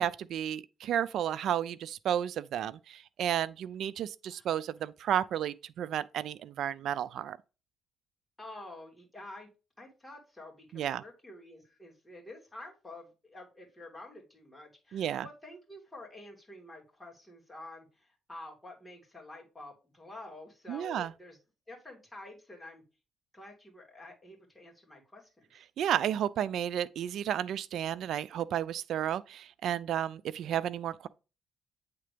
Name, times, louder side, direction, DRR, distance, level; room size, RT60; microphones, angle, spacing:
voice 1, 0.0-7.4 10.7-11.0 14.9-15.3 20.7-21.1 25.8-31.1, right 10 dB, 75° right, 0.4 m, -32 dB
voice 2, 8.4-9.5 9.8-21.4 21.7-22.8 23.3-25.7, left 2 dB, 10° left, 2.8 m, -49 dB
8.7 x 3.8 x 3.4 m
cardioid pair, 90°, 0 cm